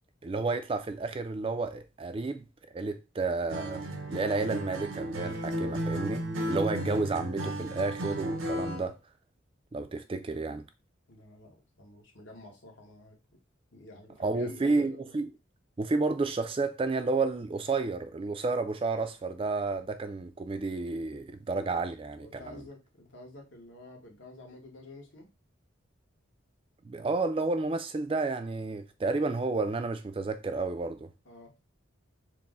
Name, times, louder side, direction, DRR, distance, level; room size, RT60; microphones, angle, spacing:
voice 1, 0.2-2.5 2.7-3.8 4.1-9.0 9.7-10.6 14.2-15.3 15.8-22.6 26.8-31.1, right 3 dB, 25° right, 0.3 m, -31 dB
Acoustic guitar, 3.5-8.9, right 1 dB, 75° right, 0.7 m, -34 dB
voice 2, 11.1-13.4 13.7-15.2 22.2-25.3 31.2-31.5, left 2 dB, 70° left, 1.3 m, -50 dB
4.5 x 2.1 x 3.6 m
head